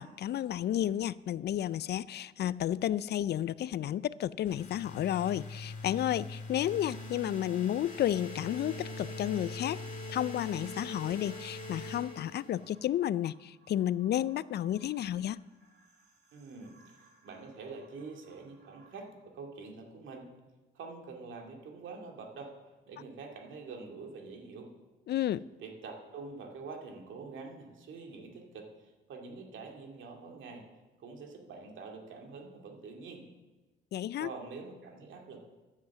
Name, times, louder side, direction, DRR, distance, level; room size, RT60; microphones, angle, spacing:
voice 1, 0.0-9.8 10.1-15.4 25.1-25.4 33.9-34.3, left 11 dB, 55° left, 0.4 m, -32 dB
sound 1, 4.5-12.8, left 2 dB, 40° left, 2.7 m, -43 dB
sound 2, 9.0-18.9, right 4 dB, 55° right, 2.8 m, -64 dB
voice 2, 16.3-20.3 20.7-22.6 22.9-24.7 25.6-30.7 31.0-33.3 34.2-35.4, right 4 dB, 75° right, 2.3 m, -46 dB
10.5 x 7.5 x 7.2 m
cardioid pair, 90°, 20 cm